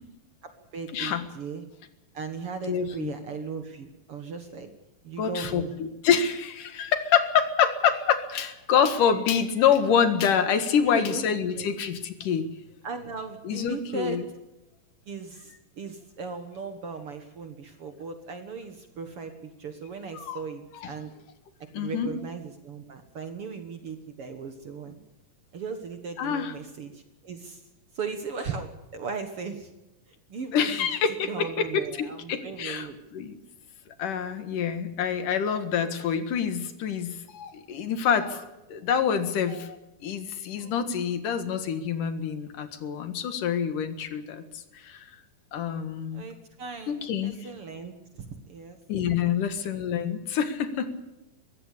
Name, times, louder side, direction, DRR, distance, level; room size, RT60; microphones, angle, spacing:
voice 1, 0.4-1.6 2.1-4.7 5.0-5.7 10.8-11.7 12.8-14.3 15.1-21.1 21.8-24.9 25.5-27.6 27.9-29.7 30.1-30.9 31.3-33.0 46.1-48.8 49.3-49.4, right 5 dB, 50° right, 7 dB, 1.9 m, -37 dB
voice 2, 0.9-1.2 2.7-3.1 5.2-12.5 13.4-14.2 20.1-20.4 20.8-20.9 21.7-22.1 26.2-26.5 30.5-32.9 33.1-33.4 34.0-38.4 38.7-39.8 40.0-44.4 44.7-45.1 45.5-46.3 46.9-47.3 48.9-51.0, left 7 dB, 70° left, 10 dB, 3.1 m, -26 dB
22.0 x 16.0 x 8.3 m, 0.98 s
omnidirectional pair, 4.0 m